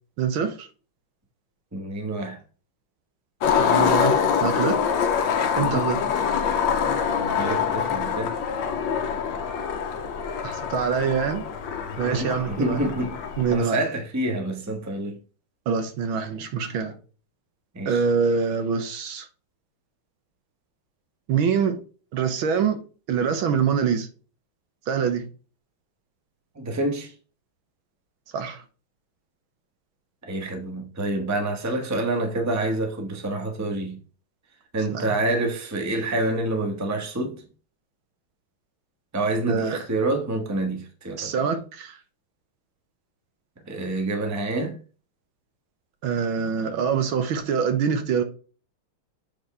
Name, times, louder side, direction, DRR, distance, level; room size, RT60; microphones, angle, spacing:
voice 1, 0.2-0.7 3.6-4.8 5.6-6.0 10.4-11.4 12.0-12.8 13.4-13.8 15.7-16.9 17.8-19.3 21.3-21.8 22.1-22.8 23.1-24.1 24.9-25.3 28.3-28.6 34.9-35.1 39.5-39.8 41.2-42.0 46.0-48.2, right 6 dB, 70° right, 1.7 m, -25 dB
voice 2, 1.7-2.4 5.6-5.9 7.3-8.4 12.0-13.2 13.5-15.2 17.7-18.0 26.5-27.1 30.2-34.0 34.7-37.4 39.1-41.3 43.7-44.8, right 2 dB, 10° right, 0.9 m, -27 dB
Skateboard, 3.4-13.6, left 7 dB, 65° left, 1.5 m, -25 dB
8.4 x 4.2 x 3.3 m
omnidirectional pair, 2.4 m